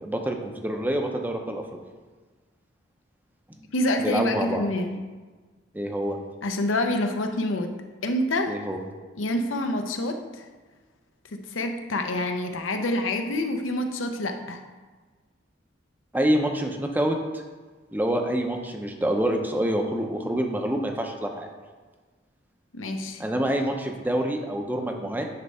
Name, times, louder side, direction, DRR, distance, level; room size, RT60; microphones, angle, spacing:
voice 1, 0.0-1.6 3.6-3.7 4.0-4.6 5.7-6.2 8.5-8.8 16.1-17.2 17.9-21.5 23.2-25.3, right 1 dB, 10° right, 3 dB, 0.6 m, -26 dB
voice 2, 3.7-5.0 6.4-7.7 8.0-8.6 9.1-10.5 11.3-14.6 22.7-23.2, left 1 dB, 90° left, 5 dB, 0.7 m, -27 dB
9.5 x 3.3 x 5.5 m, 1.3 s
head